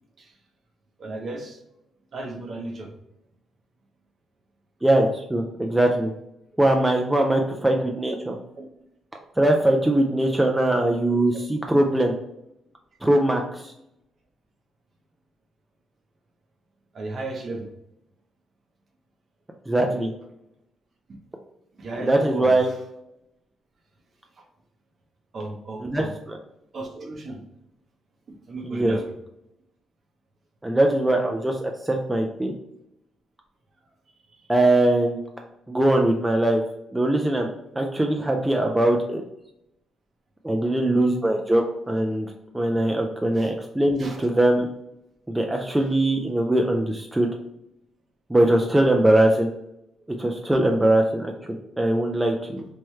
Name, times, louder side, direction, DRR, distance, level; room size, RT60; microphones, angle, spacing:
voice 1, 1.0-1.6 2.1-2.9 7.8-8.2 8.6-8.7 11.1-11.2 16.9-17.7 21.7-22.7 24.4-24.5 25.3-26.1 26.7-27.4 28.3-29.1 34.3-34.4 43.3-43.5 44.0-44.2, right 2 dB, 50° right, 3 dB, 0.7 m, -35 dB
voice 2, 4.8-6.1 6.6-8.3 9.4-12.1 13.0-13.7 19.7-20.1 22.0-22.7 25.8-26.4 28.6-29.0 30.6-32.5 34.5-35.2 35.7-36.6 36.9-37.5 37.8-39.2 40.4-42.3 42.5-44.7 45.3-47.3 48.3-49.5 50.2-51.3 51.8-52.7, right 1 dB, 10° right, 2 dB, 0.3 m, -21 dB
3.1 x 2.2 x 3.1 m, 0.81 s
cardioid pair, 90°, 0 cm